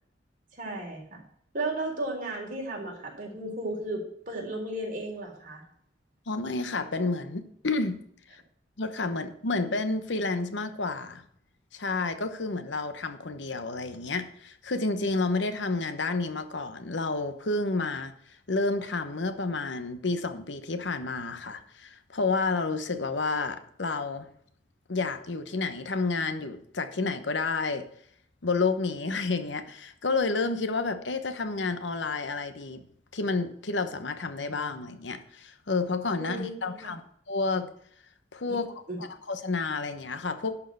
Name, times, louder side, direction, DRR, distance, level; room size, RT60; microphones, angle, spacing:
voice 1, 0.5-1.2 1.5-5.6 36.1-36.6 36.8-36.9 38.5-38.6 38.9-39.0, right 2 dB, 45° right, -1 dB, 3.7 m, -34 dB
voice 2, 6.3-8.0 8.3-8.4 8.8-11.2 11.7-18.1 18.5-24.3 24.9-27.9 28.4-32.9 33.1-37.0 37.3-37.7 38.3-38.7 39.0-40.6, left 3 dB, 75° left, 9 dB, 1.0 m, -30 dB
11.5 x 4.6 x 7.8 m, 0.66 s
head